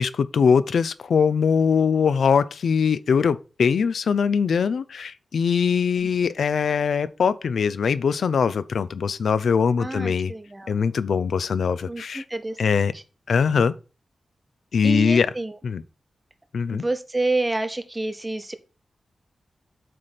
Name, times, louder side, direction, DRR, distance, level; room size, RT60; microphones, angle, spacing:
voice 1, 0.0-10.3 10.7-12.2 12.6-12.9 13.3-13.8 14.7-15.3 15.6-15.8 16.5-16.8, left 6 dB, 85° left, 0.5 m, -22 dB
voice 2, 9.8-10.8 11.9-13.0 14.8-15.6 16.7-18.5, right 2 dB, 15° right, 0.8 m, -29 dB
7.6 x 3.4 x 5.7 m
wide cardioid pair, 150°, 0 cm